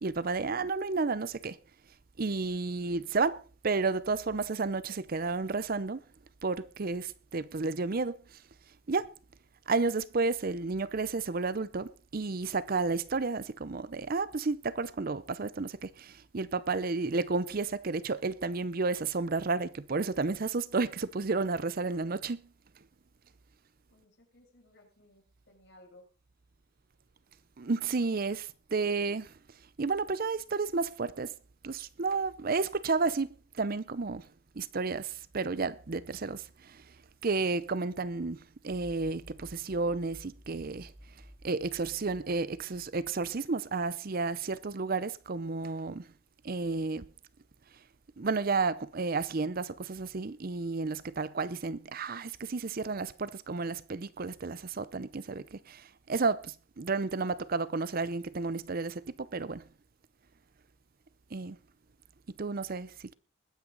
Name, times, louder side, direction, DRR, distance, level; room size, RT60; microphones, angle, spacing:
voice 1, 0.0-1.6 2.2-6.0 6.4-8.4 8.9-9.1 9.7-22.4 27.6-29.3 29.8-31.3 31.6-33.3 33.6-34.2 34.6-36.8 37.2-40.9 41.4-46.1 46.4-47.1 48.2-59.6 61.3-61.6 62.4-63.1, right 4 dB, 45° right, 0.6 m, -32 dB
voice 2, 23.9-26.1, left 1 dB, 55° left, 6.4 m, -59 dB
sound 1, 38.7-43.5, equal, 30° right, 2.8 m, -54 dB
21.0 x 9.3 x 3.9 m
head